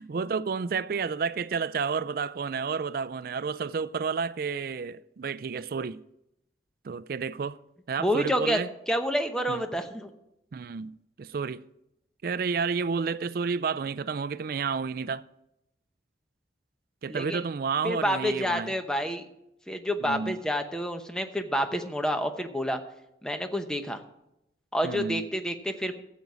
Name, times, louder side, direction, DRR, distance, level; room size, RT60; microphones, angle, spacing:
voice 1, 0.0-6.0 6.8-7.6 7.9-8.7 9.5-9.6 10.5-10.9 11.2-11.7 12.2-15.2 17.0-18.7 20.0-20.4 24.8-25.2, right 5 dB, 55° right, 0.4 m, -30 dB
voice 2, 8.0-8.6 8.9-10.1 17.1-17.4 17.8-19.3 19.7-22.8 23.2-24.0 24.7-25.9, equal, 5° left, 0.8 m, -28 dB
13.5 x 8.3 x 4.9 m
head